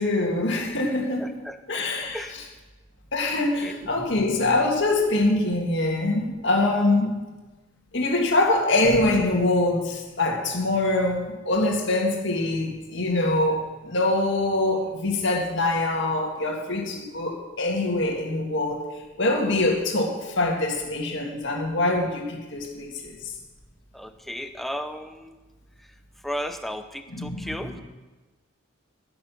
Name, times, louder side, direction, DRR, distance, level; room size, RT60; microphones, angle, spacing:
voice 1, 0.0-1.3 1.7-2.2 3.1-7.2 7.9-18.8 19.2-23.1 27.1-27.8, left 2 dB, 60° left, 0 dB, 2.1 m, -24 dB
voice 2, 1.2-1.8 2.1-2.3 3.6-3.9 23.9-25.4 25.8-25.9 26.2-27.8, equal, ahead, 8 dB, 0.5 m, -35 dB
14.0 x 6.9 x 5.8 m, 1.2 s
head